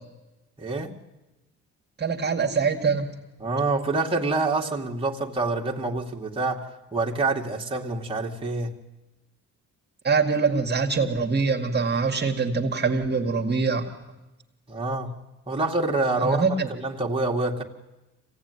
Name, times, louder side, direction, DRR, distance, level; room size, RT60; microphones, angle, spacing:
voice 1, 0.6-0.9 3.4-6.7 6.9-8.7 14.7-15.1 15.5-17.6, right 3 dB, 15° right, -1 dB, 2.3 m, -26 dB
voice 2, 2.0-3.2 10.0-13.9 16.2-16.7, right 4 dB, 35° right, 2 dB, 2.1 m, -24 dB
25.5 x 16.5 x 9.7 m, 1.1 s
cardioid pair, 90°, 30 cm